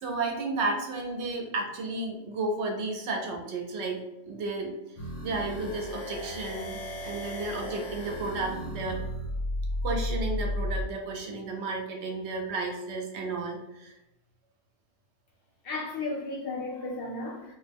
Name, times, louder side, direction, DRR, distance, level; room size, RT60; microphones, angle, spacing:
voice 1, 0.0-4.0 4.2-4.7 5.2-9.0 9.8-13.9, right 3 dB, 70° right, 1 dB, 0.8 m, -33 dB
sound 1, 5.0-10.9, left 1 dB, 80° left, 1.0 m, -34 dB
voice 2, 15.6-17.5, left 2 dB, 60° left, -2 dB, 0.7 m, -34 dB
2.3 x 2.1 x 3.3 m, 0.91 s
omnidirectional pair, 1.3 m